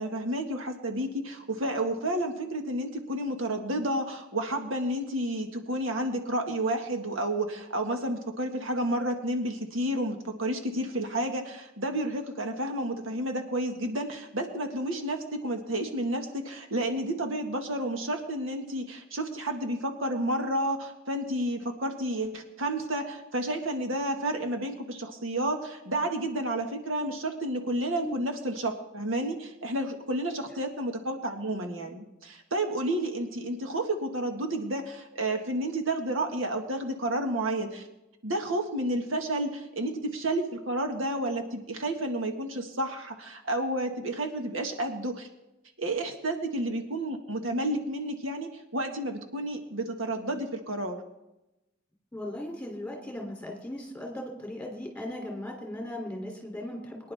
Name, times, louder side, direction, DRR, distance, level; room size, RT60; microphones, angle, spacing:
voice 1, 0.0-37.9 38.2-45.3 45.8-51.0, right 1 dB, 90° right, 4 dB, 1.8 m, -31 dB
voice 2, 52.1-57.1, left 1 dB, 5° left, 0 dB, 3.2 m, -37 dB
23.5 x 10.5 x 3.6 m, 0.93 s
head